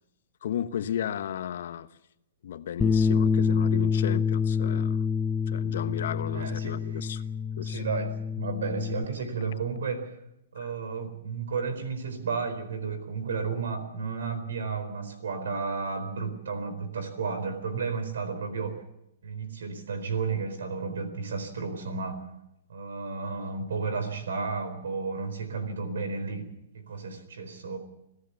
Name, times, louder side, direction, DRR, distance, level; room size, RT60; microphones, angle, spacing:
voice 1, 0.4-1.9 2.4-5.0 5.5-7.2 7.6-7.9 10.6-10.7, left 9 dB, 70° left, 1.1 m, -34 dB
Bass guitar, 2.8-9.1, left 6 dB, 15° left, 0.7 m, -27 dB
voice 2, 6.3-7.1 7.6-10.1 10.5-18.8 19.2-22.2 22.7-26.5 26.7-27.8, right 5 dB, 85° right, 4.3 m, -32 dB
26.0 x 15.0 x 7.1 m
hypercardioid pair, 140°, 0 cm